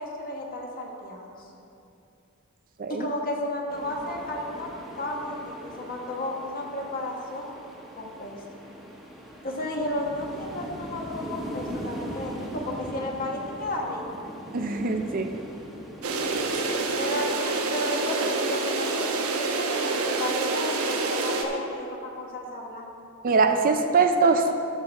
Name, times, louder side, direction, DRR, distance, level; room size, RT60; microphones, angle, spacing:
voice 1, 0.0-1.5 2.9-4.7 5.0-7.5 8.0-8.4 9.4-14.0 17.0-19.1 19.3-22.9, left 1 dB, 40° left, 0 dB, 1.3 m, -33 dB
sound 1, 3.7-17.1, equal, ahead, 1.1 m, -40 dB
voice 2, 14.5-15.3 23.2-24.5, right 4 dB, 40° right, 6 dB, 0.5 m, -22 dB
sound 2, 16.0-21.4, right 3 dB, 75° right, 0.9 m, -27 dB
11.5 x 6.8 x 4.6 m, 2.7 s
head